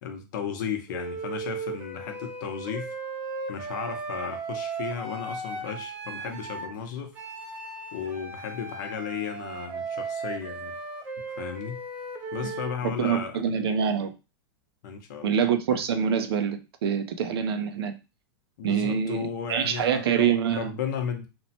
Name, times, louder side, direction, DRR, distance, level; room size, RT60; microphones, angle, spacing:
voice 1, 0.0-2.9 3.5-7.2 7.9-10.8 11.4-11.8 12.3-13.4 14.8-15.4 15.7-15.8 18.6-21.3, left 7 dB, 50° left, 5 dB, 0.6 m, -34 dB
Wind instrument woodwind instrument, 0.9-6.7 7.1-12.8, right 3 dB, 10° right, 0.4 m, -36 dB
voice 2, 12.8-14.1 15.2-18.0 18.6-20.7, right 7 dB, 75° right, 8 dB, 0.5 m, -25 dB
2.9 x 2.1 x 2.7 m, 0.28 s
supercardioid pair, 160°, 13 cm